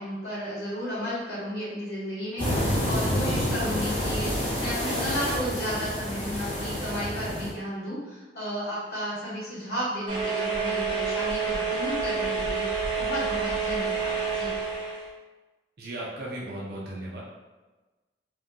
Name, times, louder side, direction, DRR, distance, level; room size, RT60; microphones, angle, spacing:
voice 1, 0.0-14.5, equal, 65° left, -8 dB, 1.4 m, -33 dB
sound 1, 2.4-7.5, equal, 30° left, 1.4 m, -28 dB
sound 2, 10.1-15.1, right 5 dB, 30° right, 0.8 m, -28 dB
voice 2, 15.8-17.2, right 1 dB, 60° right, -4 dB, 0.6 m, -36 dB
2.7 x 2.7 x 3.6 m, 1.2 s
head